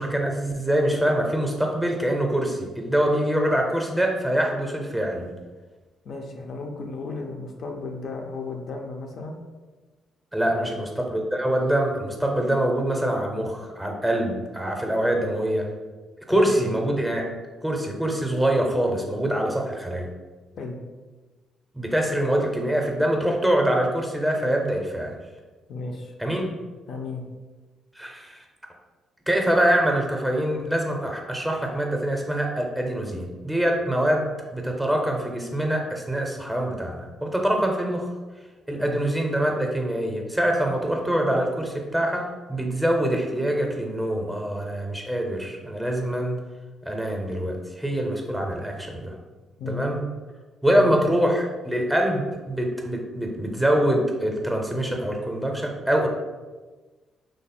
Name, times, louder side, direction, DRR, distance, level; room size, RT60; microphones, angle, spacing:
voice 1, 0.0-5.3 10.3-15.7 16.3-17.2 17.6-20.1 21.7-25.2 26.2-26.5 28.0-28.4 29.3-38.1 38.7-46.4 46.9-49.2 49.7-50.0 50.6-56.1, right 1 dB, 5° right, 1 dB, 0.6 m, -24 dB
voice 2, 6.0-9.4 10.4-10.8 16.3-16.8 20.6-20.8 25.7-26.1 26.9-27.2 38.8-39.0 49.6-49.9 50.7-51.0, left 3 dB, 60° left, 2 dB, 0.5 m, -34 dB
3.1 x 2.1 x 4.2 m, 1.3 s
cardioid pair, 90°, 0 cm